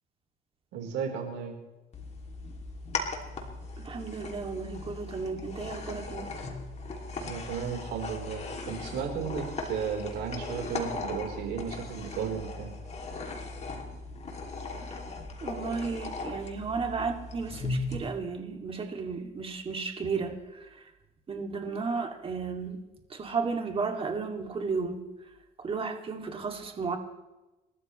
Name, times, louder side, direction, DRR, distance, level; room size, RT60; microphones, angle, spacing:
voice 1, 0.7-1.5 7.2-12.7, right 7 dB, 80° right, 2 dB, 4.2 m, -34 dB
sound 1, 1.9-18.0, left 3 dB, 40° left, 2.8 m, -38 dB
voice 2, 3.8-6.4 15.4-20.8 21.3-22.8 23.1-25.0 25.6-27.0, right 4 dB, 35° right, 3 dB, 2.6 m, -33 dB
28.5 x 13.0 x 3.2 m, 1.1 s
cardioid pair, 110°, 17 cm